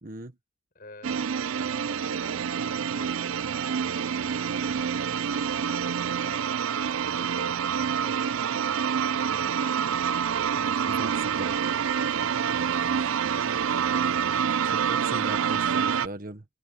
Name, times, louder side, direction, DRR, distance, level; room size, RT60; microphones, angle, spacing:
voice 1, 0.0-0.4 10.5-11.6 13.0-13.1 14.6-16.5, right 2 dB, 45° right, 1.3 m, -39 dB
voice 2, 0.7-1.2 1.7-3.1 3.4-4.5 5.7-6.6 7.2-10.0 11.3-11.9 13.3-13.6 14.3-14.5, left 3 dB, 45° left, 6.6 m, -51 dB
sound 1, 1.0-16.1, right 7 dB, 90° right, 0.5 m, -27 dB
open air
head